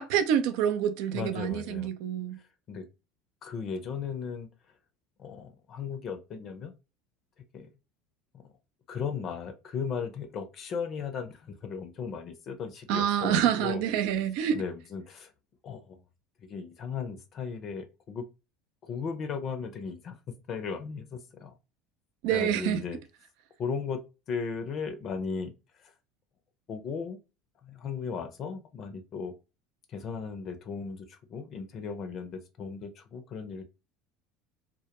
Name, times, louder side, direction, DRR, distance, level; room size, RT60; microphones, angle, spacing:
voice 1, 0.0-2.4 12.9-14.6 22.2-22.8, right 9 dB, 70° right, 0.4 m, -27 dB
voice 2, 1.1-1.9 2.7-2.9 3.4-4.5 5.2-6.7 7.5-7.7 8.3-8.4 8.9-13.8 14.5-15.3 15.6-16.0 16.5-18.2 18.8-20.2 20.5-21.5 22.3-23.0 23.6-24.0 24.3-25.5 25.8-25.9 26.7-27.2 27.6-29.3 29.9-33.6, left 6 dB, 45° left, 0.5 m, -36 dB
2.1 x 2.1 x 2.8 m
hypercardioid pair, 90°, 0 cm